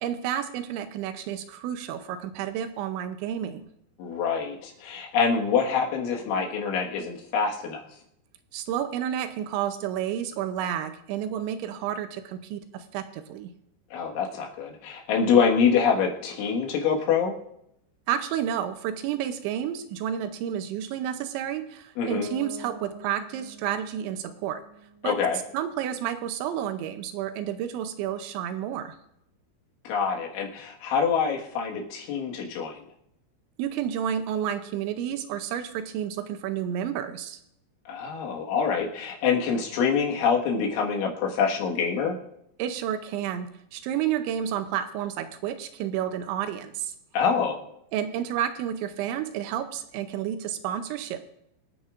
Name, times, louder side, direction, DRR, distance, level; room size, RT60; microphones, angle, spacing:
voice 1, 0.0-3.7 8.5-13.5 18.1-24.6 25.0-25.2 25.5-29.0 33.6-37.4 42.6-46.9 47.9-51.2, right 10 dB, 80° right, 9 dB, 2.9 m, -30 dB
voice 2, 4.0-7.8 13.9-17.3 22.0-22.3 25.0-25.4 29.9-32.8 37.9-42.2 47.1-47.6, left 6 dB, 80° left, 0 dB, 4.1 m, -25 dB
Bass guitar, 22.1-26.0, left 1 dB, 15° right, 3.6 m, -44 dB
25.5 x 9.2 x 2.5 m, 0.76 s
omnidirectional pair, 5.4 m